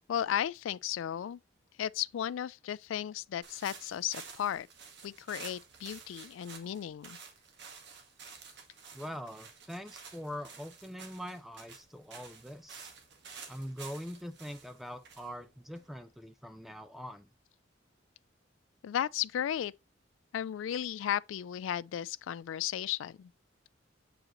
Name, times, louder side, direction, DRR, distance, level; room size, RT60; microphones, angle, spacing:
voice 1, 0.1-1.4 1.8-4.7 5.0-7.2 18.8-19.7 20.3-23.3, left 10 dB, 80° left, 0.3 m, -35 dB
sound 1, 3.4-16.2, right 5 dB, 65° right, 1.5 m, -51 dB
voice 2, 8.9-12.9 13.5-17.3, equal, ahead, 0.4 m, -43 dB
7.6 x 4.9 x 3.0 m
head